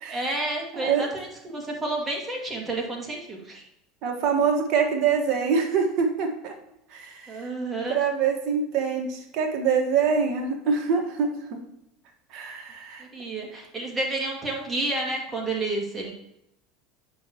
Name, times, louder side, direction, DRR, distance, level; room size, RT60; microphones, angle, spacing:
voice 1, 0.1-3.6 7.3-8.0 13.0-16.1, right 2 dB, 20° right, -1 dB, 2.1 m, -30 dB
voice 2, 0.7-1.0 4.0-6.5 6.9-7.4 7.9-11.6 12.3-13.0, right 6 dB, 55° right, 2 dB, 1.5 m, -25 dB
8.6 x 5.5 x 3.0 m, 0.83 s
supercardioid pair, 105°, 0 cm